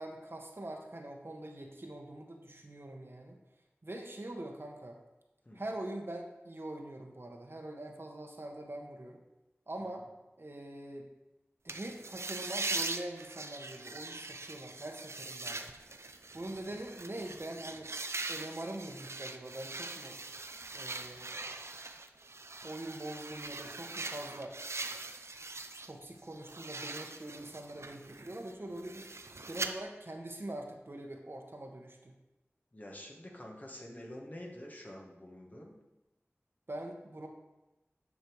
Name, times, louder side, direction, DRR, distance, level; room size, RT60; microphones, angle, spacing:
voice 1, 0.0-3.4 3.8-5.0 5.5-9.2 9.7-10.1 10.4-11.1 11.6-15.7 16.3-17.9 18.3-20.2 20.7-21.4 22.6-24.5 25.9-29.1 29.5-32.1 36.7-37.3, right 1 dB, 55° right, 2 dB, 1.2 m, -43 dB
sound 1, 11.7-25.9 26.2-29.7, right 3 dB, 70° right, 0.6 m, -42 dB
voice 2, 32.7-35.7, left 1 dB, 35° left, -1 dB, 1.6 m, -47 dB
9.8 x 5.4 x 4.7 m, 1.0 s
wide cardioid pair, 55°, 5 cm